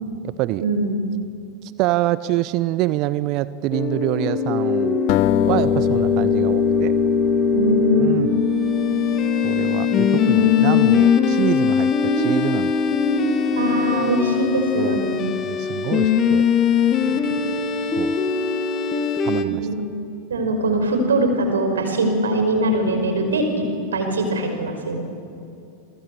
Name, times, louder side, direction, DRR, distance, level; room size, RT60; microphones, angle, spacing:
voice 1, 0.2-0.6 1.6-5.0 5.5-6.9 8.0-8.4 9.4-12.7 14.8-15.0 15.4-16.4 18.0-18.2 19.2-19.7, right 16 dB, 40° right, 17 dB, 0.6 m, -25 dB
sound 1, 3.7-19.4, left 6 dB, 30° left, 2.0 m, -20 dB
sound 2, 5.1-8.3, left 16 dB, 45° left, 0.7 m, -25 dB
voice 2, 7.5-8.3 13.5-15.3 17.0-17.1 19.4-19.8 20.3-23.6 23.9-25.0, right 1 dB, 70° right, 6 dB, 5.2 m, -22 dB
29.0 x 24.5 x 8.5 m, 2.6 s
figure-of-eight pair, 90°, 0 cm